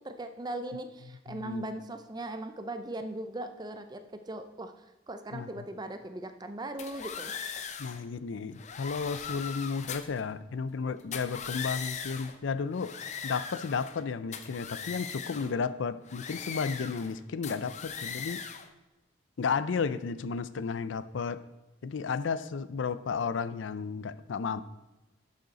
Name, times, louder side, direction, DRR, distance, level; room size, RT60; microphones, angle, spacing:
voice 1, 0.0-4.7 5.1-7.3, right 1 dB, 20° right, 8 dB, 0.5 m, -39 dB
voice 2, 1.3-1.7 5.3-5.5 7.8-13.0 13.2-18.4 19.4-21.4 21.8-24.6, left 5 dB, 90° left, 15 dB, 0.5 m, -33 dB
sound 1, 6.8-8.0 8.5-10.2 11.0-12.4 12.7-14.0 14.3-15.5 16.1-17.1 17.4-18.7, left 7 dB, 40° left, 0.6 m, -40 dB
11.5 x 6.6 x 4.0 m, 1.0 s
head